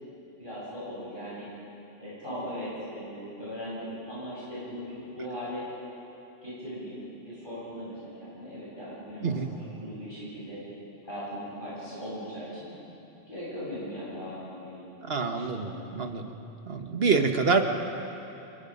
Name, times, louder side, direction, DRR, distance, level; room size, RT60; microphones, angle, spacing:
voice 1, 0.4-1.5 2.0-5.7 6.4-9.3 9.8-10.6 11.0-12.7 13.3-15.9, equal, 45° left, -10 dB, 8.1 m, -39 dB
voice 2, 15.0-16.3 16.7-17.6, right 4 dB, 60° right, 5 dB, 1.6 m, -26 dB
28.5 x 23.0 x 5.4 m, 2.9 s
omnidirectional pair, 1.2 m